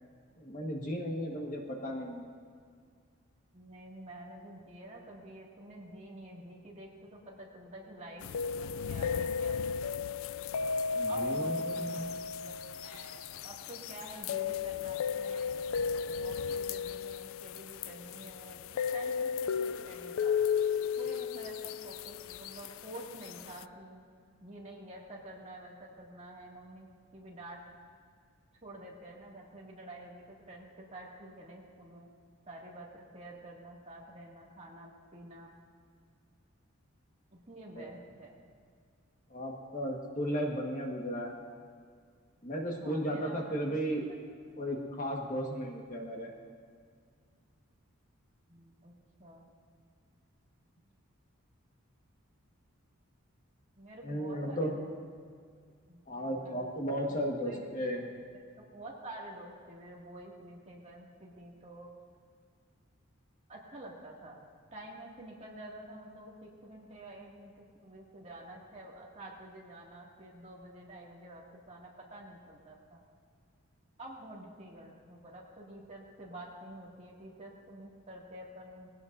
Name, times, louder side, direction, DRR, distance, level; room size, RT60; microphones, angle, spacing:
voice 1, 0.4-2.3 10.9-12.1 37.8-37.9 39.3-41.3 42.4-44.1 44.6-46.3 54.0-54.7 56.1-58.0, equal, 40° left, 0 dB, 1.6 m, -35 dB
voice 2, 3.5-9.8 11.1-15.6 16.1-20.4 21.0-24.0 24.4-27.6 28.6-32.1 32.5-35.5 37.3-38.3 42.8-43.7 44.1-44.2 48.5-48.9 49.2-49.5 53.8-55.0 55.2-55.4 55.9-58.0 58.6-61.9 63.5-73.0 74.0-78.9, right 1 dB, 30° right, -3 dB, 2.2 m, -49 dB
sound 1, 8.2-23.6, left 6 dB, 75° left, 0.3 m, -34 dB
20.5 x 16.5 x 2.7 m, 2.1 s
head